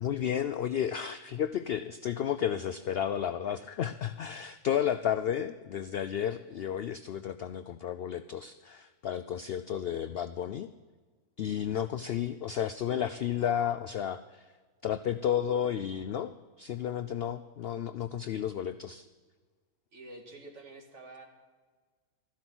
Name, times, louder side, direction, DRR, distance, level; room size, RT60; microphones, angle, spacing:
voice 1, 0.0-10.7 11.4-14.4 14.8-19.0, left 9 dB, 70° left, 12 dB, 0.5 m, -32 dB
voice 2, 19.9-21.3, right 2 dB, 55° right, 2 dB, 2.2 m, -48 dB
13.5 x 11.5 x 6.1 m, 1.5 s
omnidirectional pair, 1.5 m